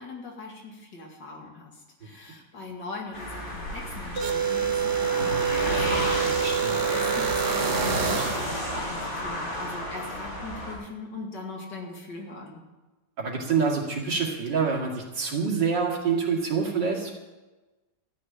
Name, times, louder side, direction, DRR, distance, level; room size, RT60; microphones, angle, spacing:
voice 1, 0.0-12.6, left 3 dB, 75° left, 0 dB, 2.9 m, -41 dB
sound 1, 3.1-10.7, left 1 dB, 40° left, 4.9 m, -31 dB
sound 2, 4.2-8.6, right 8 dB, 50° right, 0.9 m, -27 dB
voice 2, 6.4-6.8 13.2-17.1, right 5 dB, 75° right, -1 dB, 3.0 m, -26 dB
13.0 x 6.7 x 9.9 m, 1.1 s
omnidirectional pair, 1.9 m